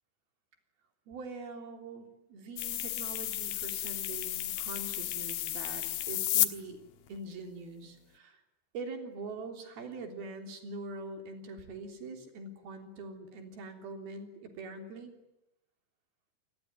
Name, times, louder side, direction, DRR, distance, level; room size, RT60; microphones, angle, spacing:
voice 1, 1.1-6.8 7.1-8.4 8.7-15.1, right 3 dB, 75° right, 5 dB, 5.3 m, -43 dB
sound 1, 2.6-6.5, left 13 dB, 75° left, 3.0 m, -32 dB
27.0 x 21.0 x 9.4 m, 0.86 s
omnidirectional pair, 4.4 m